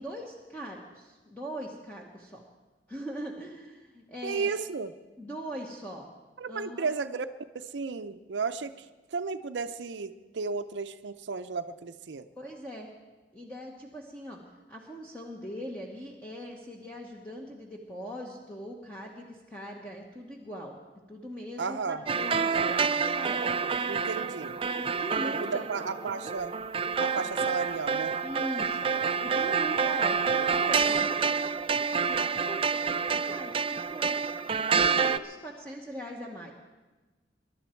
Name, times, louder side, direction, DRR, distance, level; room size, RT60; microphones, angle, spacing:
voice 1, 0.0-2.4 2.9-4.5 5.2-6.1 6.5-6.9 12.4-12.9 13.3-14.4 14.7-20.8 21.1-23.4 24.8-25.7 27.2-27.3 28.2-28.9 29.2-31.2 32.0-34.2 34.8-36.5, equal, 10° left, -2 dB, 1.2 m, -41 dB
voice 2, 4.2-4.9 6.4-7.3 7.5-8.9 9.1-12.3 21.6-22.0 23.9-24.6 25.2-26.5 27.0-28.2, right 4 dB, 80° right, 9 dB, 0.6 m, -33 dB
sound 1, 22.1-35.2, right 5 dB, 30° right, 0.4 m, -28 dB
22.5 x 11.5 x 4.5 m, 1.2 s
head